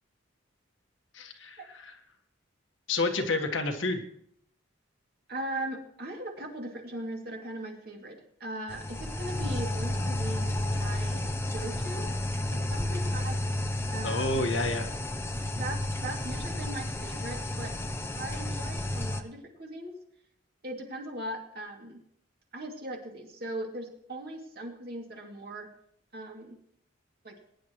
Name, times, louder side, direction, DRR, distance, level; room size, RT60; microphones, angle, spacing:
voice 1, 1.1-1.9 2.9-4.0 14.0-14.9, left 2 dB, 70° left, 4 dB, 1.6 m, -29 dB
voice 2, 5.3-11.2 11.5-12.1 12.5-13.6 13.9-14.4 15.6-17.7 18.1-19.9 20.6-22.0 22.5-25.7 26.1-26.6 27.2-27.4, right 1 dB, 50° right, 0 dB, 2.6 m, -39 dB
sound 1, 8.7-19.2, left 1 dB, 10° left, 0.7 m, -32 dB
21.0 x 10.5 x 3.1 m, 0.70 s
head